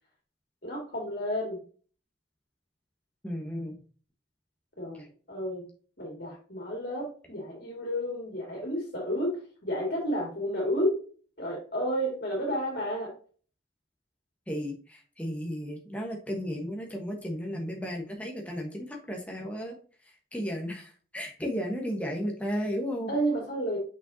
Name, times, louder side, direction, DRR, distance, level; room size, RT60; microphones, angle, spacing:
voice 1, 0.6-1.6 4.8-5.7 6.0-11.0 11.4-13.1 23.1-23.8, equal, 55° left, -3 dB, 2.4 m, -31 dB
voice 2, 3.2-3.8 14.5-19.7 20.3-23.1, equal, 5° left, 0 dB, 1.2 m, -34 dB
6.1 x 5.7 x 2.7 m, 0.40 s
head